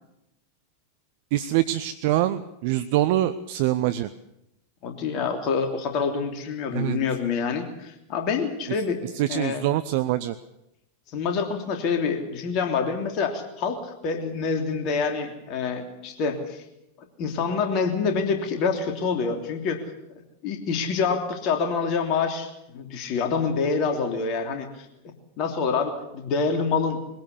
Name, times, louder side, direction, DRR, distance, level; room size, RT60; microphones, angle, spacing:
voice 1, 1.3-4.1 6.7-7.0 9.1-10.4, right 14 dB, 50° right, 13 dB, 0.8 m, -24 dB
voice 2, 4.8-9.0 9.3-9.6 11.1-16.6 17.2-19.8 20.4-22.5 22.7-24.9 25.4-27.0, left 5 dB, 40° left, 4 dB, 3.1 m, -26 dB
22.5 x 17.0 x 8.4 m, 0.85 s
figure-of-eight pair, 90°, 0 cm